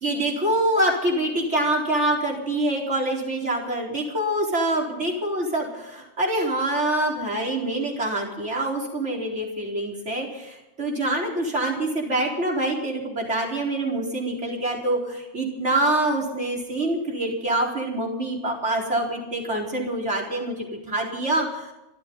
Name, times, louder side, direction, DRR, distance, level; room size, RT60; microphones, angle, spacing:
voice 1, 0.0-21.7, right 1 dB, 50° right, -1 dB, 4.6 m, -25 dB
26.5 x 14.0 x 3.9 m, 0.96 s
omnidirectional pair, 1.6 m